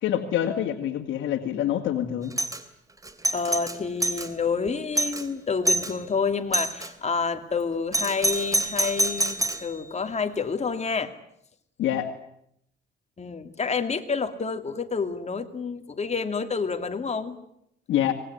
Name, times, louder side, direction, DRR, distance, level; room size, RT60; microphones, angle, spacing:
voice 1, 0.0-2.3 11.8-12.1 17.9-18.1, left 11 dB, 80° left, 5 dB, 2.2 m, -26 dB
Doorbell, 2.3-2.6 3.0-4.3 4.7-4.8 5.0-5.3 5.7-5.9 6.5-6.9 7.9-9.7, right 2 dB, 15° right, 2.8 m, -26 dB
voice 2, 3.3-11.1 13.2-17.4, left 5 dB, 35° left, 7 dB, 2.7 m, -28 dB
25.0 x 20.0 x 9.8 m, 0.76 s
cardioid pair, 90°, 20 cm